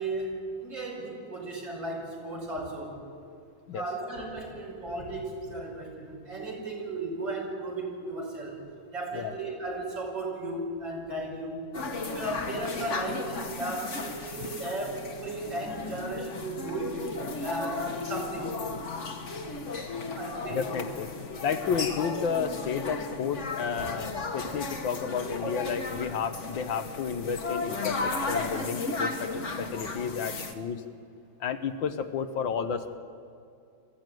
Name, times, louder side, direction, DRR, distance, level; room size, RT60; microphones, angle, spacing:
voice 1, 0.0-3.0 3.7-8.6 8.9-11.6 12.0-17.0 17.4-18.6 20.2-20.6, right 2 dB, 70° right, -1 dB, 6.1 m, -35 dB
sound 1, 11.7-30.5, left 3 dB, 40° left, 1.7 m, -35 dB
voice 2, 20.5-21.1 21.4-30.8 31.4-33.0, left 6 dB, 80° left, 9 dB, 1.8 m, -32 dB
23.0 x 15.0 x 9.2 m, 2.5 s
omnidirectional pair, 2.1 m